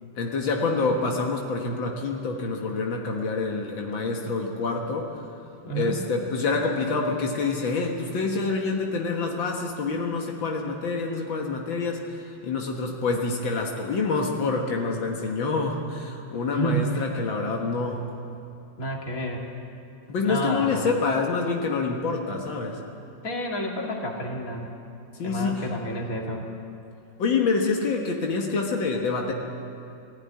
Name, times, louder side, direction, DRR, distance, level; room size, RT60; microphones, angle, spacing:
voice 1, 0.2-5.1 5.7-18.1 20.1-22.8 25.2-25.7 27.2-29.3, left 4 dB, 80° left, 1 dB, 2.2 m, -27 dB
voice 2, 5.6-6.0 16.5-17.1 18.8-19.4 20.2-20.9 23.2-24.7 25.2-26.5, right 1 dB, 45° left, 0 dB, 2.6 m, -30 dB
19.0 x 14.5 x 9.6 m, 2.7 s
omnidirectional pair, 2.1 m